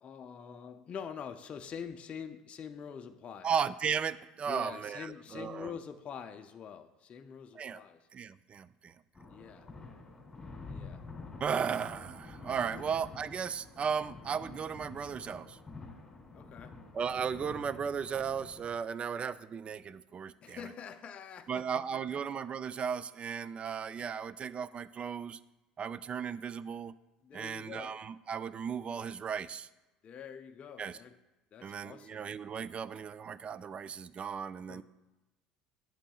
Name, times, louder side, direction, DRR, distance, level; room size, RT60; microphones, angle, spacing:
voice 1, 0.0-3.5 4.5-8.1 9.3-9.7 10.7-11.1 12.7-13.0 16.3-16.8 20.4-22.0 27.2-28.0 30.0-31.2 31.5-32.3 34.7-34.8, left 7 dB, 40° left, 6 dB, 0.5 m, -45 dB
voice 2, 3.4-5.7 7.5-7.8 8.1-8.9 11.4-15.6 16.9-20.6 21.5-25.4 25.8-26.9 27.3-29.7 30.8-31.0 31.6-34.8, right 7 dB, 35° right, 16 dB, 0.3 m, -36 dB
sound 1, 9.1-18.8, left 3 dB, 15° left, 2.7 m, -49 dB
11.0 x 7.3 x 2.3 m, 1.1 s
hypercardioid pair, 75°, 3 cm